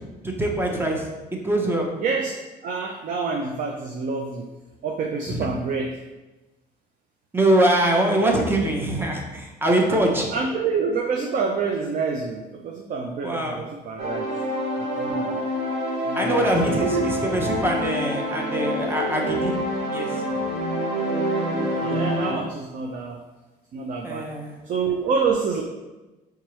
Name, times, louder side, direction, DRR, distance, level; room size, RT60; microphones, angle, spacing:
voice 1, 0.2-1.9 5.3-5.5 7.3-10.3 13.2-13.6 16.2-19.5 19.9-20.1 24.0-24.5, right 1 dB, 15° right, 0 dB, 0.8 m, -23 dB
voice 2, 2.0-2.3 2.6-4.5 4.8-6.0 9.9-10.0 10.3-14.3 14.8-15.4 16.0-17.0 21.5-23.2 23.7-24.3 24.6-25.6, right 5 dB, 50° right, 2 dB, 0.5 m, -27 dB
sound 1, 14.0-22.3, equal, 85° right, 1.1 m, -26 dB
4.5 x 3.5 x 3.1 m, 1.1 s
cardioid pair, 110°, 17 cm